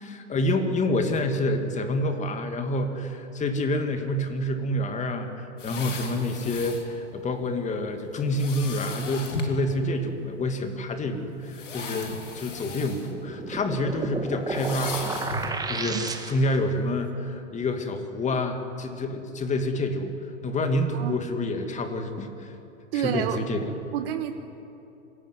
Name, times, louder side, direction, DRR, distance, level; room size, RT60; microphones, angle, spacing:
voice 1, 0.0-20.1 20.4-22.5 22.9-23.7, left 1 dB, 20° left, 6 dB, 2.5 m, -28 dB
sound 1, 5.6-6.9 8.3-9.6 10.5-10.6 11.4-13.1 13.4-13.7 14.5-15.6 16.1-16.2, left 3 dB, 75° left, 3.7 m, -36 dB
sound 2, 13.1-16.7, right 3 dB, 10° right, 1.8 m, -32 dB
voice 2, 22.9-23.4 23.9-24.3, right 11 dB, 55° right, 7 dB, 1.5 m, -28 dB
26.0 x 17.0 x 9.6 m, 2.8 s
hypercardioid pair, 110°, 37 cm